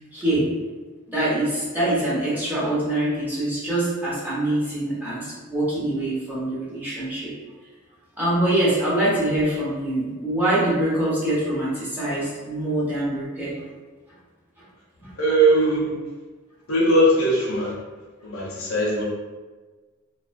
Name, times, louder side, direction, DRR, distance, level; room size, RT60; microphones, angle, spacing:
voice 1, 0.1-0.5 1.1-7.3 8.2-13.5 15.0-15.1, right 1 dB, 10° right, -10 dB, 0.8 m, -24 dB
voice 2, 15.2-15.9 16.7-17.7 18.2-19.0, right 1 dB, 70° left, -4 dB, 0.7 m, -20 dB
2.3 x 2.1 x 2.5 m, 1.3 s
head